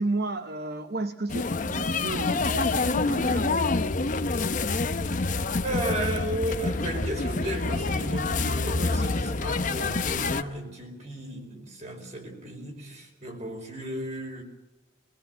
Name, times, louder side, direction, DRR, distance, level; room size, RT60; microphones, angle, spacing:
voice 1, 0.0-3.6 5.8-6.1, right 2 dB, 55° right, 8 dB, 0.9 m, -33 dB
sound 1, 1.3-10.4, left 3 dB, 40° left, 0.8 m, -27 dB
voice 2, 5.6-14.4, right 1 dB, 35° right, 3 dB, 5.0 m, -34 dB
22.5 x 20.0 x 8.0 m, 1.1 s
head